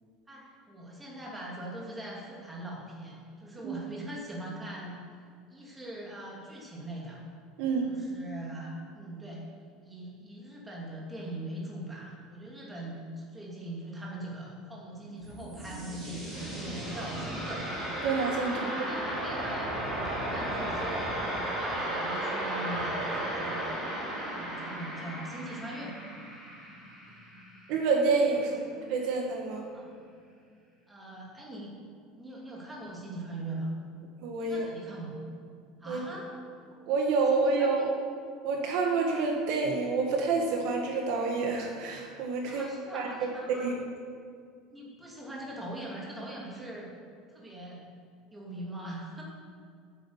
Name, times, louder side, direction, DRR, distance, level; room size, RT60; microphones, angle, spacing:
voice 1, 0.3-5.0 5.5-7.2 7.8-9.4 9.8-17.7 18.5-19.8 20.1-23.6 24.3-25.9 28.4-28.5 29.7-29.9 30.9-31.7 32.1-33.7 34.4-35.1 35.8-36.3 37.3-37.9 42.5-43.7 44.7-46.9 47.3-47.8 48.3-49.2, right 1 dB, 10° right, -3 dB, 2.5 m, -41 dB
voice 2, 7.6-7.9 18.0-18.9 27.7-29.6 34.2-34.6 35.9-36.0 36.9-37.9 38.4-42.7 42.9-43.1 43.5-43.8, right 4 dB, 55° right, 1 dB, 1.7 m, -28 dB
sound 1, 15.0-27.9, right 1 dB, 25° right, 3.9 m, -35 dB
9.2 x 9.0 x 8.1 m, 2.2 s
cardioid pair, 170°, 0 cm